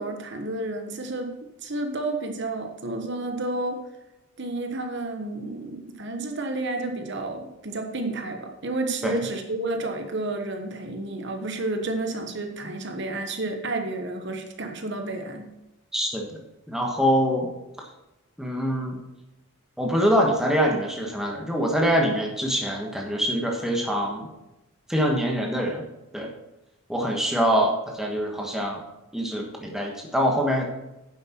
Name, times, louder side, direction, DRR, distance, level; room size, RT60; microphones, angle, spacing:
voice 1, 0.0-3.8 4.4-15.5, right 2 dB, 55° right, 5 dB, 1.1 m, -31 dB
voice 2, 15.9-16.3 16.7-17.5 18.4-19.0 19.8-24.3 24.9-25.8 26.1-26.3 26.9-28.8 29.1-30.7, equal, ahead, 0 dB, 1.4 m, -24 dB
9.9 x 7.7 x 4.4 m, 0.97 s
head